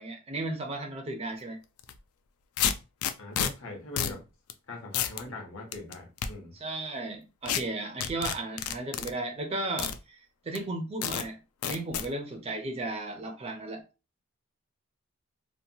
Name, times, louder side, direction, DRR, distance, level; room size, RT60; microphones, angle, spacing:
voice 1, 0.0-1.6 6.5-11.4 11.6-13.8, right 2 dB, 25° right, 0.4 m, -35 dB
sound 1, 1.8-1.9 2.6-3.5 4.0-4.2 4.5-4.6 4.9-5.2 5.7-6.3 7.5-7.6 8.0-9.1 9.8-10.0 10.5-10.6 11.0-11.2 11.6-12.1, left 9 dB, 85° left, 0.3 m, -29 dB
voice 2, 3.2-4.2 4.7-6.5, left 2 dB, 65° left, 0.8 m, -41 dB
2.8 x 2.2 x 2.6 m
head